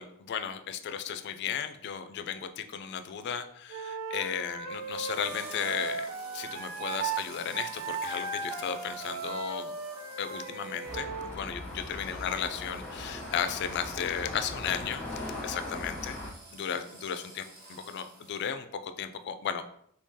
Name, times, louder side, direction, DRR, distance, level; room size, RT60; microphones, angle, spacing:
voice 1, 0.0-6.1 6.3-9.7 10.2-16.2 16.5-19.7, left 8 dB, 50° left, 10 dB, 0.3 m, -35 dB
Wind instrument woodwind instrument, 3.7-7.2 7.5-11.3, right 5 dB, 85° right, 0.5 m, -37 dB
sound 1, 4.7-18.5, right 2 dB, 45° right, 1.0 m, -50 dB
sound 2, 10.8-16.3, left 1 dB, 5° left, 0.7 m, -39 dB
3.7 x 2.8 x 2.7 m, 0.71 s
head